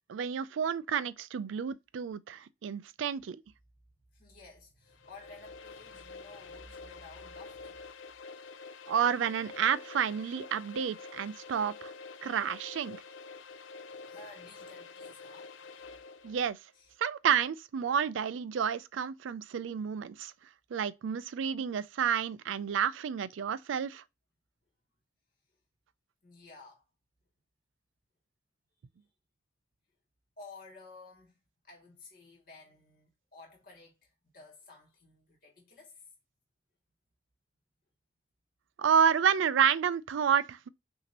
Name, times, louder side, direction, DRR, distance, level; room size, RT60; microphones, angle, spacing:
voice 1, 0.1-3.4 8.9-11.9 12.2-13.0 16.2-16.6 17.0-20.3 20.7-24.0 38.8-40.7, right 7 dB, 85° right, 0.4 m, -30 dB
voice 2, 4.1-7.8 14.0-16.0 16.7-16.9 26.2-26.8 30.4-31.4 31.6-36.1, left 3 dB, 45° left, 2.3 m, -53 dB
sound 1, 4.9-16.5, left 4 dB, 85° left, 0.5 m, -48 dB
5.9 x 2.7 x 2.9 m
head